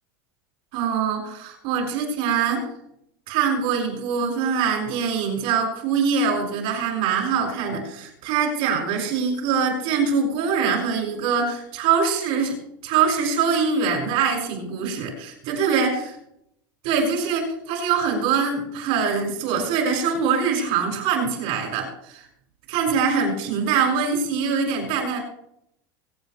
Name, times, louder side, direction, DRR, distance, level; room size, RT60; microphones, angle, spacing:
voice 1, 0.7-2.7 3.3-16.0 16.8-22.2 22.7-25.2, right 6 dB, 60° right, 1 dB, 6.3 m, -23 dB
24.0 x 8.9 x 3.4 m, 0.75 s
supercardioid pair, 110°, 11 cm